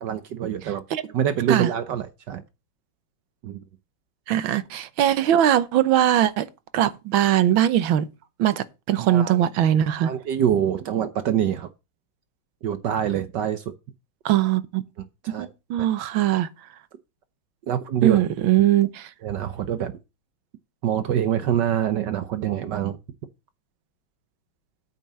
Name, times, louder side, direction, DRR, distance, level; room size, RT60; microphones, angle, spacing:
voice 1, 0.0-0.8 1.1-2.4 3.4-3.6 9.1-9.4 10.0-11.7 12.6-13.7 15.2-15.5 17.7-18.2 19.2-19.9 20.8-23.0, right 9 dB, 65° right, 1.4 m, -25 dB
voice 2, 4.3-6.5 6.7-8.1 8.4-10.1 14.2-14.8 15.4-16.5 18.0-19.1, right 11 dB, 85° right, 1.7 m, -21 dB
9.0 x 5.5 x 7.4 m
omnidirectional pair, 2.1 m